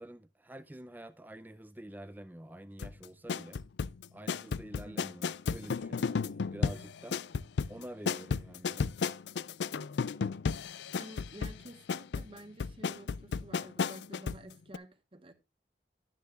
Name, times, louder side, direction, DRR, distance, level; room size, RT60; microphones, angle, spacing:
voice 1, 0.0-3.6 4.1-6.1 6.5-7.2 7.7-9.0, right 1 dB, 10° right, 0.5 m, -47 dB
sound 1, 2.8-14.4 14.7-14.8, left 5 dB, 80° left, 0.4 m, -34 dB
voice 2, 10.9-15.3, right 1 dB, 30° right, 1.1 m, -50 dB
12.0 x 10.0 x 2.4 m
head